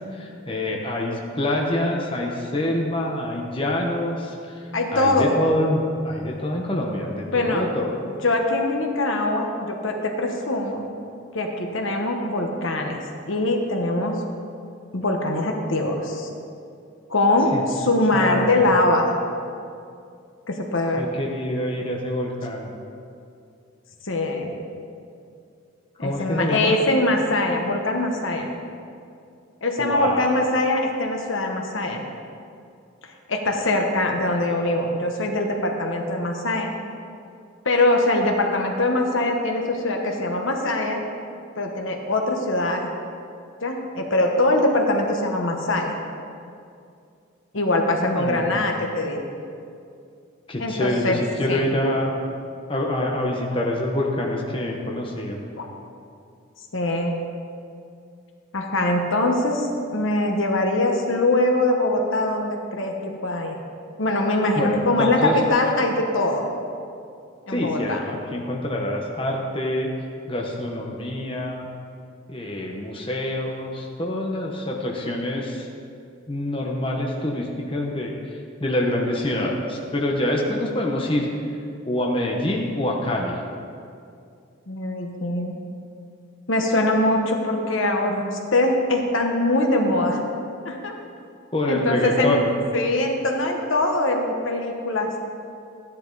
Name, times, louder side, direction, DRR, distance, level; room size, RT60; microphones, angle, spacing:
voice 1, 0.1-7.9 17.5-17.6 18.1-18.7 21.0-22.7 26.0-26.8 29.8-30.4 48.0-48.6 50.5-52.1 52.7-55.4 64.5-65.4 67.5-69.9 70.3-71.7 72.3-75.7 76.3-81.3 81.8-83.4 91.5-92.5, left 1 dB, 25° left, -1 dB, 1.0 m, -26 dB
voice 2, 4.7-5.3 7.3-7.7 8.2-10.8 11.3-13.0 13.3-14.2 14.9-16.3 17.1-19.1 20.5-21.0 24.0-24.5 26.0-28.5 29.6-32.0 33.3-36.7 37.6-41.0 41.6-42.9 43.6-46.0 47.5-49.2 50.6-51.2 51.5-51.6 55.6-55.7 56.7-57.2 58.5-63.0 63.2-63.6 64.0-66.4 67.5-68.0 84.7-85.6 86.5-88.2 88.5-90.2 90.6-90.9 91.7-92.4 92.7-95.2, left 2 dB, 70° left, 2 dB, 1.3 m, -22 dB
14.0 x 10.5 x 4.0 m, 2.4 s
head